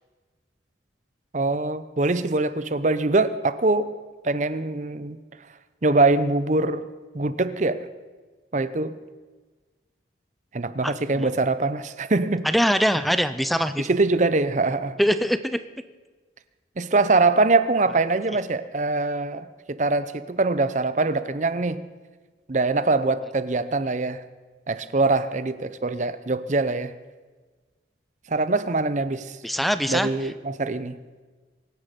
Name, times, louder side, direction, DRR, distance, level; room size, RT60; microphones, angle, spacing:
voice 1, 1.3-3.9 4.2-5.2 5.8-6.9 7.1-7.9 8.5-9.0 10.5-12.4 13.8-15.0 16.8-21.8 22.5-24.2 24.7-26.9 28.3-29.4 29.9-31.0, right 3 dB, 40° right, 14 dB, 0.7 m, -23 dB
voice 2, 10.8-11.3 12.4-13.9 15.0-15.6 29.4-30.1, equal, ahead, 12 dB, 0.4 m, -23 dB
24.0 x 9.9 x 5.2 m, 1.4 s
head